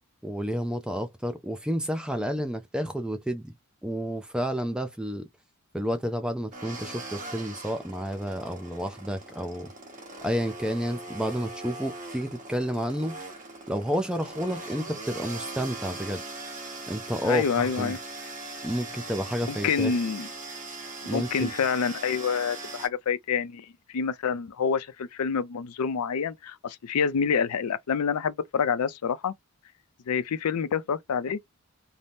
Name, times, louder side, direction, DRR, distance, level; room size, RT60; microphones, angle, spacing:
voice 1, 0.2-3.5 3.8-5.2 5.7-9.7 10.2-13.2 13.7-16.2 16.9-18.0 18.6-20.0 21.1-21.5, equal, 5° right, 0.3 m, -30 dB
sound 1, 6.5-22.9, right 2 dB, 35° right, 0.9 m, -40 dB
voice 2, 17.2-18.0 19.5-20.3 21.0-29.3 30.1-31.4, left 6 dB, 85° left, 0.4 m, -27 dB
2.7 x 2.0 x 3.3 m
head